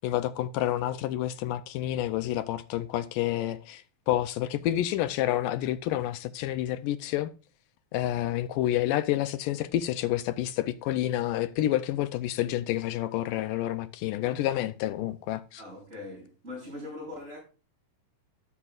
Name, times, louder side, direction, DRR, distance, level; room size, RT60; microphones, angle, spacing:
voice 1, 0.0-7.3 7.9-15.6, left 13 dB, 80° left, 2.0 m, -29 dB
voice 2, 15.6-17.4, left 2 dB, 20° right, 6.9 m, -41 dB
12.5 x 10.0 x 2.4 m
omnidirectional pair, 4.2 m